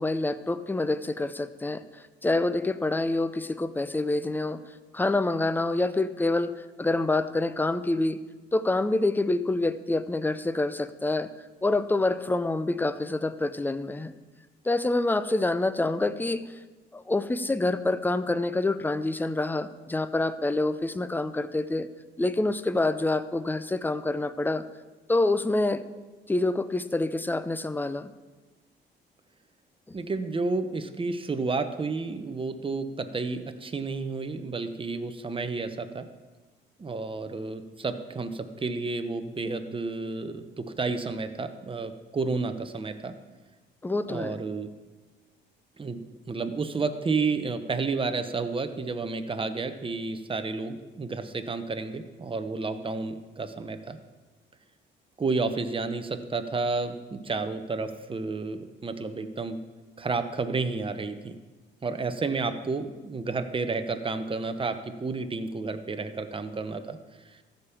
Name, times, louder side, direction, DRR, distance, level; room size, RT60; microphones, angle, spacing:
voice 1, 0.0-1.8 2.2-4.6 4.9-8.2 8.5-11.3 11.6-14.1 14.6-16.4 16.9-21.9 22.2-24.6 25.1-25.8 26.3-28.1 29.9-30.0 43.8-44.4, left 2 dB, 10° left, 13 dB, 0.6 m, -27 dB
voice 2, 29.9-36.1 36.8-43.1 44.1-44.7 45.8-46.0 46.3-54.0 55.2-59.6 60.0-61.4 61.8-67.0, right 4 dB, 25° right, 9 dB, 1.0 m, -31 dB
14.0 x 5.3 x 7.1 m, 1.3 s
cardioid pair, 90°, 20 cm